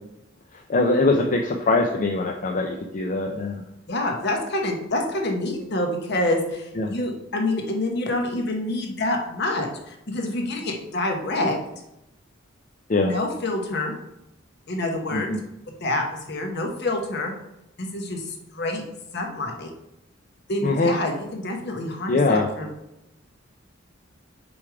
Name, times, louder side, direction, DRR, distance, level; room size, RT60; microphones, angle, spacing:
voice 1, 0.7-3.6 6.8-6.9 12.9-13.1 15.1-15.4 20.6-20.9 22.1-22.5, left 3 dB, 40° left, 2 dB, 0.5 m, -22 dB
voice 2, 3.9-11.6 13.0-13.9 14.7-15.3 15.8-17.3 17.8-18.8 19.1-19.7 20.5-22.7, left 1 dB, 60° left, 2 dB, 1.1 m, -27 dB
6.9 x 3.3 x 4.9 m, 0.87 s
head